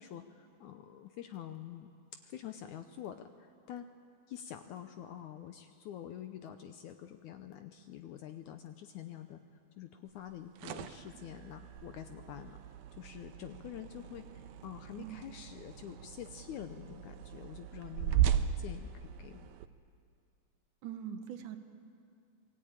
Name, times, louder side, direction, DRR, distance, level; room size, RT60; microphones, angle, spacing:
voice 1, 0.0-1.9 2.2-3.9 4.3-12.6 13.0-19.6, left 10 dB, 75° left, 8 dB, 1.9 m, -47 dB
sound 1, 10.3-19.7, right 10 dB, 85° right, 2.6 m, -37 dB
voice 2, 15.0-15.3 20.8-21.6, right 9 dB, 70° right, 7 dB, 2.4 m, -42 dB
26.5 x 19.5 x 8.9 m, 2.4 s
omnidirectional pair, 4.2 m